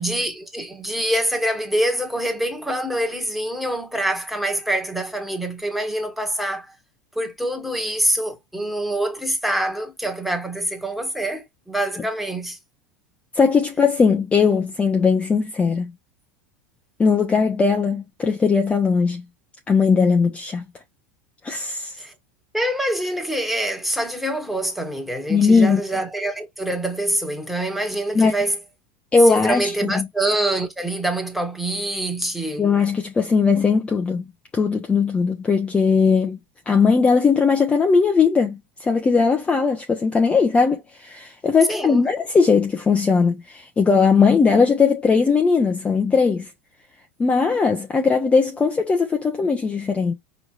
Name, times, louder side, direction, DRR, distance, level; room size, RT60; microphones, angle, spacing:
voice 1, 0.0-6.7 7.1-12.6 22.0-22.1 22.5-28.6 29.2-32.7 41.7-42.0, right 1 dB, ahead, 1.4 m, -25 dB
voice 2, 13.3-15.9 17.0-19.2 19.7-20.7 21.4-22.0 25.3-25.8 28.1-28.3 29.1-30.0 32.6-34.3 34.5-36.4 36.7-46.5 47.2-50.1, left 5 dB, 20° left, 0.7 m, -19 dB
5.0 x 3.2 x 2.4 m
supercardioid pair, 110°, 7 cm